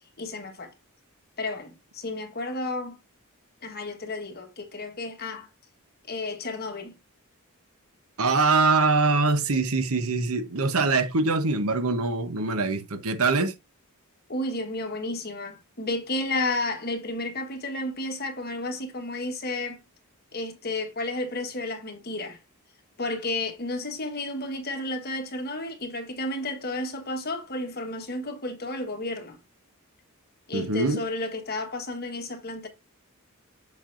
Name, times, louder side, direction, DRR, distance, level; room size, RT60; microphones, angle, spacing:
voice 1, 0.2-0.7 1.4-3.0 3.6-5.5 6.1-6.9 14.3-19.8 20.3-22.4 23.0-29.4 30.5-32.7, left 2 dB, 45° left, 1.3 m, -32 dB
voice 2, 8.2-13.5 30.5-31.0, right 3 dB, 75° right, 1.0 m, -23 dB
7.4 x 5.4 x 2.6 m
head